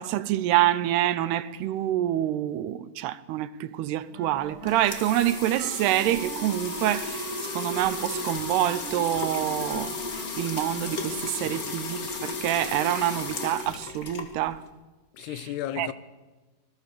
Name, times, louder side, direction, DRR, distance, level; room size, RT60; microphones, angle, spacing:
voice 1, 0.0-7.3 7.5-10.0 10.4-14.6 15.8-15.9, right 13 dB, 85° right, 2.9 m, -26 dB
Wind instrument woodwind instrument, 4.1-11.4, right 2 dB, 30° right, 4.4 m, -41 dB
sound 1, 4.4-14.7, left 4 dB, 40° left, 1.3 m, -35 dB
voice 2, 11.3-11.8 15.1-15.9, left 12 dB, 85° left, 3.1 m, -35 dB
26.5 x 19.5 x 6.8 m
omnidirectional pair, 4.6 m